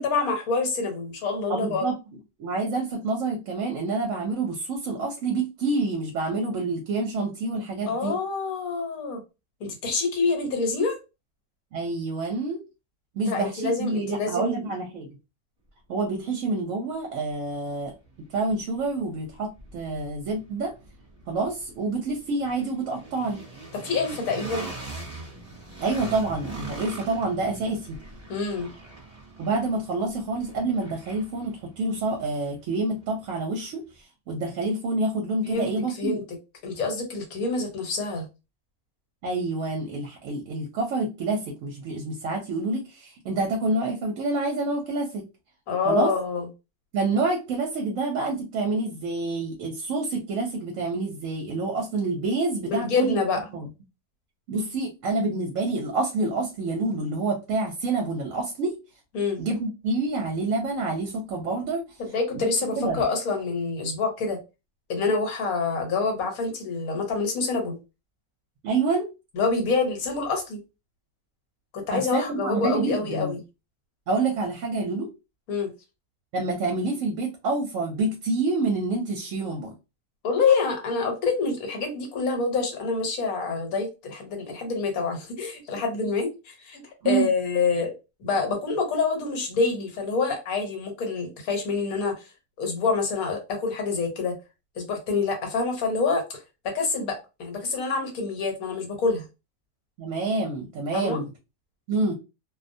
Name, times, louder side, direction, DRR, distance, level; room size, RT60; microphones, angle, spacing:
voice 1, 0.0-1.8 7.9-9.2 9.6-11.0 13.3-14.6 23.7-24.7 28.3-28.7 35.4-35.7 36.0-36.2 36.6-38.3 45.7-46.5 52.7-53.4 59.1-59.4 62.0-64.4 64.9-67.8 69.3-70.6 71.7-73.4 75.5-75.7 80.2-87.9 88.2-92.3 92.6-94.3 94.8-99.2 100.9-101.2, left 4 dB, 75° left, 1.3 m, -26 dB
voice 2, 1.5-2.0 2.4-8.2 11.7-12.6 13.1-15.1 15.9-17.9 18.3-20.7 21.3-23.4 25.8-28.0 29.4-36.2 39.2-45.2 45.9-46.1 46.9-53.2 53.5-53.7 54.5-58.7 59.4-61.8 62.3-62.4 62.8-63.0 68.6-69.1 71.9-73.3 74.1-75.1 76.3-79.7 87.0-87.3 100.0-101.3 101.9-102.1, right 3 dB, 70° right, 0.9 m, -27 dB
sound 1, 16.9-17.0 17.5-33.4, right 2 dB, 25° right, 0.8 m, -43 dB
2.5 x 2.1 x 2.6 m
omnidirectional pair, 1.6 m